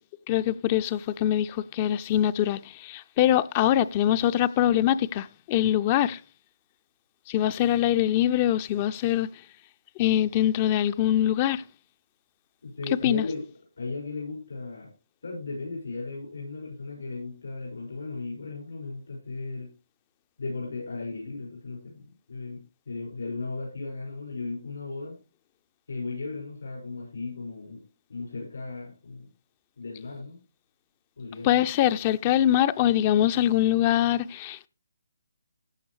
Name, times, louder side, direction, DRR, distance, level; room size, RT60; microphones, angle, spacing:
voice 1, 0.3-6.2 7.3-9.3 10.0-11.6 13.0-13.2 31.4-34.7, left 12 dB, 30° left, 0.5 m, -23 dB
voice 2, 12.6-13.5 13.8-14.9 15.2-19.7 20.4-25.2 25.9-27.8 28.1-29.3 29.8-30.4 31.2-31.6, left 3 dB, 75° left, 6.3 m, -36 dB
15.0 x 9.0 x 3.2 m
hypercardioid pair, 150°, 0 cm